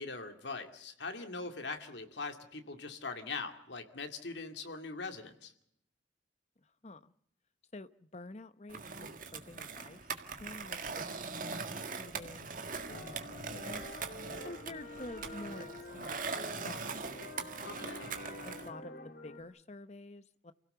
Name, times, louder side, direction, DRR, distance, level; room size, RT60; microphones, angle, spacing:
voice 1, 0.0-5.5 17.6-18.1, left 3 dB, 70° left, 7 dB, 2.4 m, -42 dB
voice 2, 6.6-7.1 7.7-10.1 10.4-13.9 14.4-16.4 16.6-17.2 18.4-20.5, left 2 dB, 35° left, 13 dB, 0.8 m, -49 dB
Skateboard, 8.7-18.7, right 4 dB, 45° right, 1.8 m, -41 dB
sound 1, 12.9-19.4, left 2 dB, 50° left, 2.5 m, -48 dB
29.0 x 17.0 x 6.9 m, 0.74 s
head